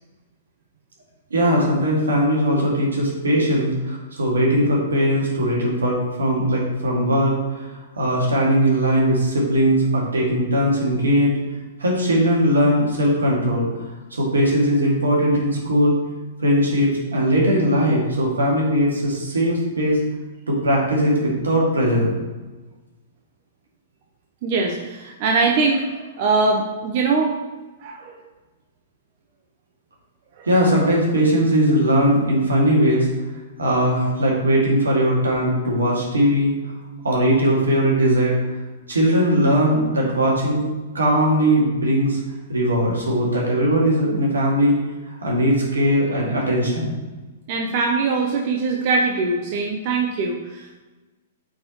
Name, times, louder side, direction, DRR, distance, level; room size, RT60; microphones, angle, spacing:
voice 1, 1.3-7.3 8.0-11.4 11.8-13.7 14.1-15.9 16.4-20.0 20.5-22.2 30.5-33.1 33.6-36.5 37.0-38.4 38.9-40.6 40.9-42.2 42.5-44.7 45.1-46.9, equal, 85° right, -3 dB, 2.1 m, -19 dB
voice 2, 24.4-27.4 27.8-28.2 30.4-30.5 47.5-50.8, right 3 dB, 50° right, 0 dB, 0.8 m, -22 dB
8.4 x 4.4 x 3.1 m, 1.2 s
hypercardioid pair, 115°, 0 cm